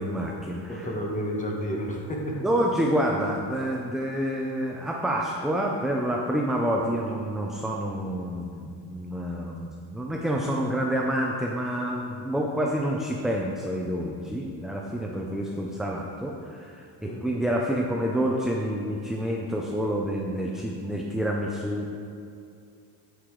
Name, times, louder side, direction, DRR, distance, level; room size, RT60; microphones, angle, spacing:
voice 1, 0.0-0.9 2.4-21.9, equal, ahead, -1 dB, 0.5 m, -28 dB
voice 2, 0.7-2.4 6.8-6.9 17.0-17.2, equal, 20° left, -1 dB, 1.3 m, -31 dB
8.0 x 7.9 x 3.2 m, 2.5 s
cardioid pair, 110°, 42 cm